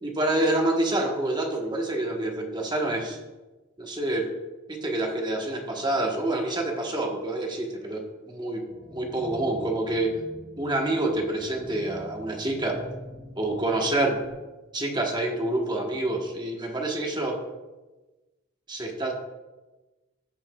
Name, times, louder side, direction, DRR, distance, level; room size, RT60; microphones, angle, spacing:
voice 1, 0.0-3.2 3.8-4.3 4.7-8.7 8.9-10.2 10.6-12.8 13.4-14.2 14.7-17.4 18.7-19.1, right 1 dB, 20° right, 1 dB, 1.1 m, -27 dB
sound 1, 8.7-14.3, equal, 35° right, 1.4 m, -45 dB
15.0 x 5.7 x 2.3 m, 1.1 s
head